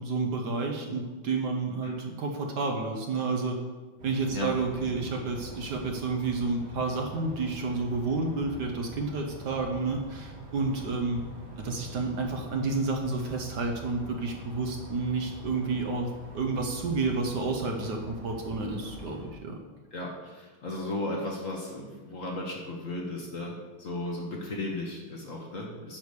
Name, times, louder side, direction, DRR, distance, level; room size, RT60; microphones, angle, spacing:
voice 1, 0.0-3.6 4.0-11.3 11.6-19.5, right 3 dB, 60° right, 2 dB, 1.3 m, -30 dB
sound 1, 4.0-19.3, equal, 85° right, 3.6 m, -45 dB
voice 2, 19.9-26.0, left 2 dB, 45° left, -1 dB, 1.2 m, -35 dB
9.5 x 5.0 x 6.6 m, 1.4 s
omnidirectional pair, 2.3 m